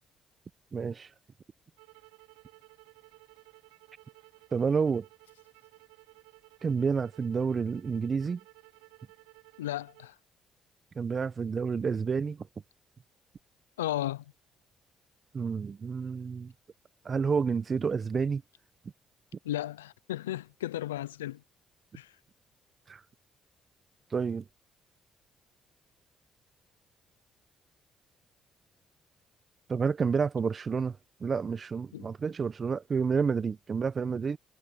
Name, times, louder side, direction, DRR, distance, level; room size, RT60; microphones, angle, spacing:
voice 1, 0.7-1.1 4.5-5.1 6.6-8.4 10.9-12.5 15.3-16.5 17.0-18.4 22.9-23.0 24.1-24.4 29.7-34.4, right 5 dB, 45° right, 1.0 m, -29 dB
sound 1, 1.8-10.1, right 25 dB, 80° right, 3.2 m, -57 dB
voice 2, 9.6-10.1 13.8-14.2 19.4-21.4 21.9-22.1 31.9-32.1, left 14 dB, 85° left, 0.7 m, -34 dB
hypercardioid pair, 45°, 0 cm